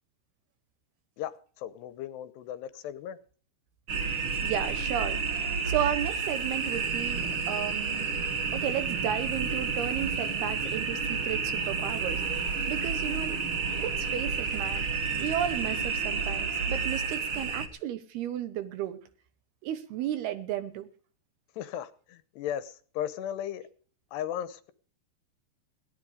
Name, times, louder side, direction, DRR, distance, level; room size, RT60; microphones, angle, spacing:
voice 1, 1.2-3.2 21.6-23.7 24.1-24.7, left 10 dB, 75° left, 2.8 m, -36 dB
sound 1, 3.9-17.7, right 5 dB, 55° right, 1.4 m, -30 dB
voice 2, 4.4-8.1 8.5-12.4 12.7-13.4 13.8-19.0 19.6-20.9, right 10 dB, 70° right, 2.8 m, -34 dB
17.5 x 12.0 x 5.0 m
omnidirectional pair, 5.2 m